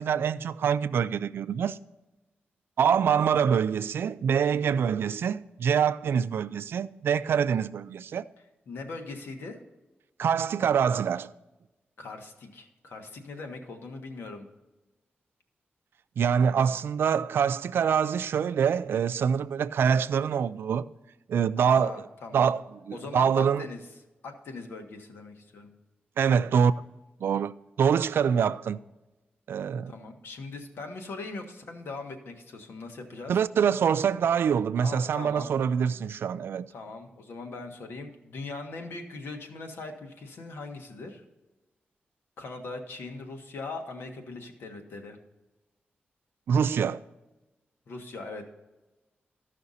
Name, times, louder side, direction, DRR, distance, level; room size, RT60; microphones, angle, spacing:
voice 1, 0.0-1.8 2.8-8.2 10.2-11.3 16.2-20.9 21.3-21.9 22.3-23.6 26.2-26.7 27.2-27.5 27.8-28.8 29.5-29.9 33.3-36.7 46.5-47.0, right 7 dB, 80° right, 0.4 m, -25 dB
voice 2, 8.4-9.6 12.0-14.5 21.6-22.6 22.9-23.8 24.2-25.7 29.8-33.3 34.8-35.5 36.7-41.2 42.4-45.2 47.9-48.5, left 3 dB, 90° left, 1.4 m, -40 dB
14.0 x 5.8 x 4.1 m
wide cardioid pair, 135°, 4 cm